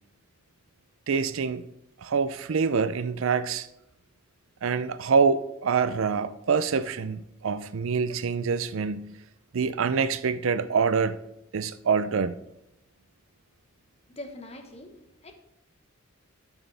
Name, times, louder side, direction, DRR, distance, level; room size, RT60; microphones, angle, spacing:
voice 1, 1.1-1.6 2.0-3.7 4.6-9.1 9.5-11.2 11.5-12.4, right 5 dB, 75° right, 0.5 m, -25 dB
voice 2, 14.1-15.3, left 1 dB, 30° left, 1.1 m, -43 dB
12.5 x 6.2 x 3.4 m
head